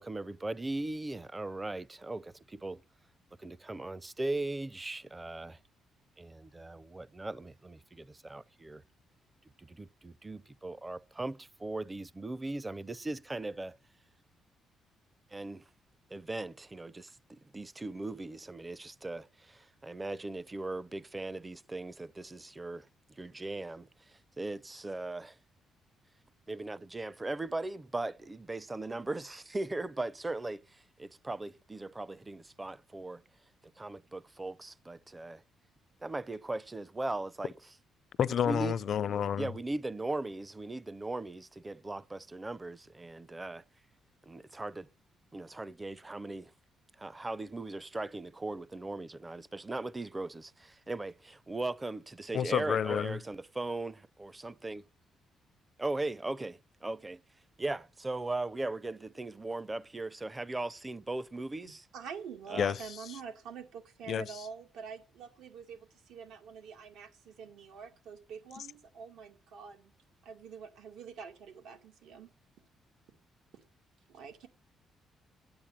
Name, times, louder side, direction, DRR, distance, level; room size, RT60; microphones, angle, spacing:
voice 1, 0.0-2.8 3.4-5.6 6.2-8.8 9.6-13.8 15.3-15.6 16.1-22.9 23.2-25.4 26.5-33.2 33.8-35.4 36.0-37.5 38.4-38.7 39.4-43.6 44.2-44.9 45.3-46.5 47.0-54.8 55.8-57.2 57.6-61.9 62.5-62.8, right 2 dB, 20° right, 0.6 m, -38 dB
voice 2, 38.2-39.5 52.3-53.2 62.6-62.7 64.1-64.3, left 8 dB, 60° left, 0.5 m, -29 dB
voice 3, 61.9-69.9 70.2-72.3 74.1-74.5, right 6 dB, 85° right, 2.2 m, -46 dB
10.5 x 8.8 x 8.9 m
cardioid pair, 90°, 0 cm